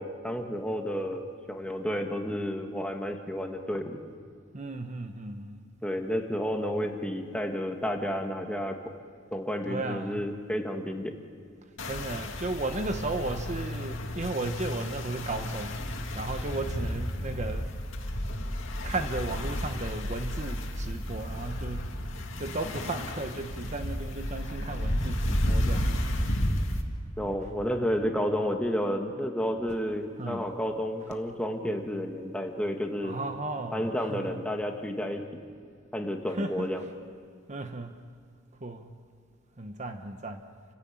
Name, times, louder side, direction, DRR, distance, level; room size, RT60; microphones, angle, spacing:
voice 1, 0.0-4.0 5.8-8.7 9.3-11.1 27.2-33.2 33.7-35.2 35.9-36.9, equal, 5° left, 3 dB, 1.7 m, -31 dB
voice 2, 4.5-5.6 9.7-10.2 11.9-17.7 18.8-26.2 27.4-27.5 30.2-30.5 33.0-34.4 36.3-36.7 37.5-38.0 38.6-38.9 39.6-40.4, right 2 dB, 35° right, 7 dB, 1.0 m, -35 dB
sound 1, 11.8-26.8, equal, 70° left, 2.3 m, -32 dB
29.0 x 16.0 x 8.8 m, 2.2 s
head